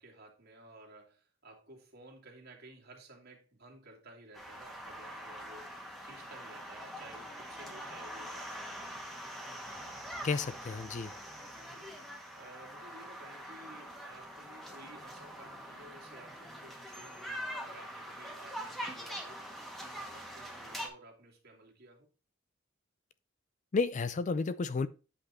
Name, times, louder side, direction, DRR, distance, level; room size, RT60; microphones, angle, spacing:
voice 1, 0.0-5.7 6.0-9.0 11.7-22.1, right 2 dB, 55° right, 2.4 m, -55 dB
sound 1, 4.3-20.9, equal, ahead, 1.6 m, -44 dB
voice 2, 10.2-11.1 23.7-24.9, left 4 dB, 40° left, 0.4 m, -32 dB
8.4 x 5.2 x 4.2 m
head